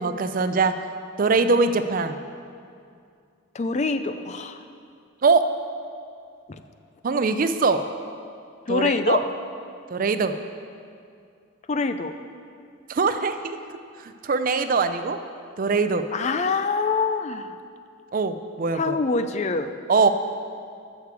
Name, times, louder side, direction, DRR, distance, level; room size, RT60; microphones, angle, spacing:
voice 1, 0.0-0.7 1.2-2.2 5.2-5.4 7.0-7.8 8.7-9.2 9.9-10.3 12.9-13.6 14.2-15.2 15.6-16.0 18.1-19.0 19.9-20.1, right 4 dB, 40° right, 10 dB, 0.4 m, -22 dB
voice 2, 3.5-4.6 8.7-9.2 11.7-12.1 16.1-17.5 18.7-19.7, left 4 dB, 35° left, 10 dB, 0.4 m, -25 dB
13.5 x 6.6 x 4.7 m, 2.3 s
head